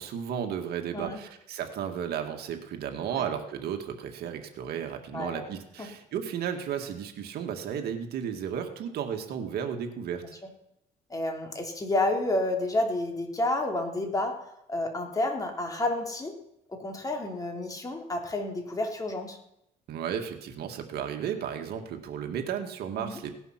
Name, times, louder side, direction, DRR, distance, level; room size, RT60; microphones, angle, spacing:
voice 1, 0.0-10.4 19.9-23.4, right 8 dB, 70° right, 5 dB, 2.0 m, -34 dB
voice 2, 5.1-5.5 5.8-5.9 11.1-14.4 14.7-16.3 16.7-19.4 23.0-23.1, left 2 dB, 20° left, 2 dB, 3.3 m, -30 dB
18.0 x 11.0 x 6.0 m, 0.80 s
cardioid pair, 110°, 17 cm